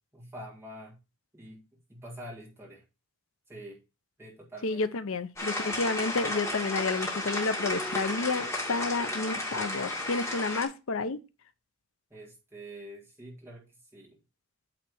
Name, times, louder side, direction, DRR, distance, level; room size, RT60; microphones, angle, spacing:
voice 1, 0.1-1.0 1.3-1.6 1.9-2.8 3.5-3.8 4.2-4.8 12.1-14.2, right 1 dB, 10° right, 1.7 m, -46 dB
voice 2, 4.6-11.2, left 3 dB, 80° left, 0.7 m, -30 dB
sound 1, 5.4-10.6, left 1 dB, 15° left, 1.9 m, -33 dB
8.7 x 3.3 x 6.2 m
head